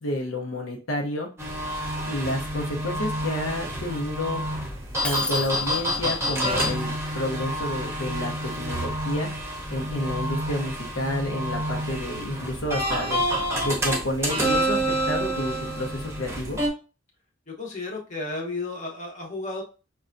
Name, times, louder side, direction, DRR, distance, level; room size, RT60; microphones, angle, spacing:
voice 1, 0.0-1.3 2.0-4.4 5.0-9.3 9.7-13.2 13.6-16.6, left 1 dB, 70° left, 0 dB, 0.7 m, -30 dB
sound 1, 1.4-16.7, equal, 15° right, 0.7 m, -28 dB
Shatter, 5.0-6.1, left 1 dB, 5° left, 0.3 m, -34 dB
voice 2, 17.5-19.6, left 2 dB, 40° left, -1 dB, 0.9 m, -33 dB
5.3 x 2.2 x 2.5 m, 0.33 s
head